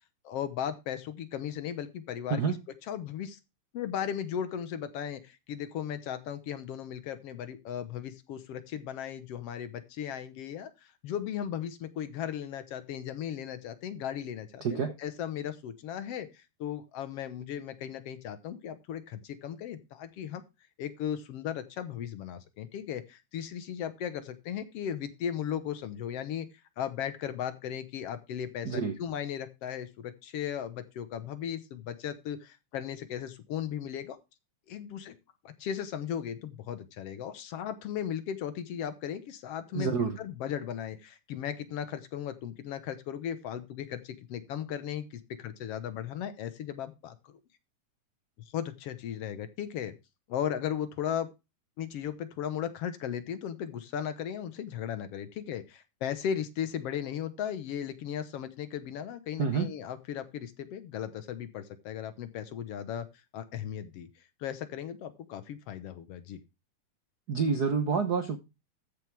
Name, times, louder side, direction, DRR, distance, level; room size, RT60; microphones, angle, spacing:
voice 1, 0.2-2.4 2.9-3.4 3.7-20.4 20.8-26.5 26.8-34.2 34.7-35.2 35.4-47.3 48.5-50.0 50.3-51.3 51.8-63.1 63.3-64.1 64.4-66.4, left 9 dB, 65° left, 1.8 m, -36 dB
voice 2, 14.6-14.9 28.6-28.9 39.7-40.2 59.4-59.7 67.3-68.4, right 5 dB, 85° right, 0.8 m, -28 dB
14.0 x 6.7 x 3.4 m
omnidirectional pair, 3.5 m